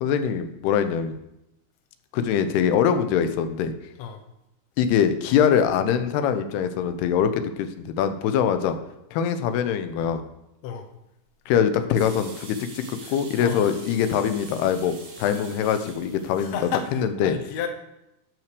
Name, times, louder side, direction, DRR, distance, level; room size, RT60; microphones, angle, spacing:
voice 1, 0.0-1.2 2.1-3.7 4.8-8.8 9.1-10.2 11.5-12.8 13.1-16.6 16.9-17.3, left 8 dB, 90° left, 9 dB, 2.9 m, -23 dB
sound 1, 11.9-17.0, right 4 dB, 70° right, 4.1 m, -45 dB
voice 2, 13.0-13.6 16.4-17.7, left 8 dB, 65° left, 5 dB, 1.7 m, -32 dB
11.0 x 6.0 x 6.8 m, 0.88 s
omnidirectional pair, 4.5 m